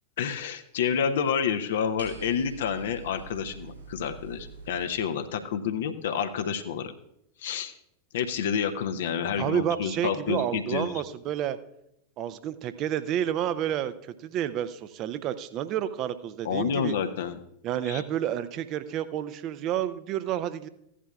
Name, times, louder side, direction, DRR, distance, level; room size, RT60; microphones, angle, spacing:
voice 1, 0.2-6.9 7.4-7.7 8.1-10.9 16.4-17.4 17.9-18.0, left 7 dB, 60° left, 7 dB, 0.7 m, -29 dB
sound 1, 2.0-4.9, right 4 dB, 90° right, 4.8 m, -45 dB
voice 2, 9.4-11.6 12.2-16.9 17.6-20.7, right 10 dB, 35° right, 13 dB, 0.6 m, -30 dB
16.0 x 11.0 x 2.4 m, 0.80 s
figure-of-eight pair, 90°, 0 cm